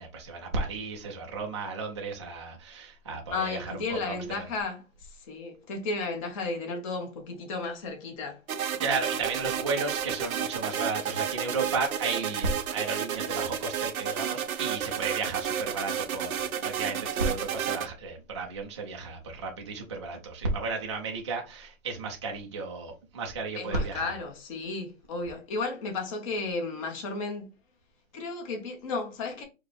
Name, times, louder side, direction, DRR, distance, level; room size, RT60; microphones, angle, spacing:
voice 1, 0.0-4.4 8.8-24.1, right 4 dB, 25° right, 0.4 m, -33 dB
voice 2, 3.3-8.4 23.5-27.5 28.1-29.4, left 3 dB, 25° left, 0.8 m, -34 dB
sound 1, 8.5-17.9, right 8 dB, 80° right, 0.8 m, -31 dB
4.7 x 2.1 x 3.2 m
hypercardioid pair, 150°, 41 cm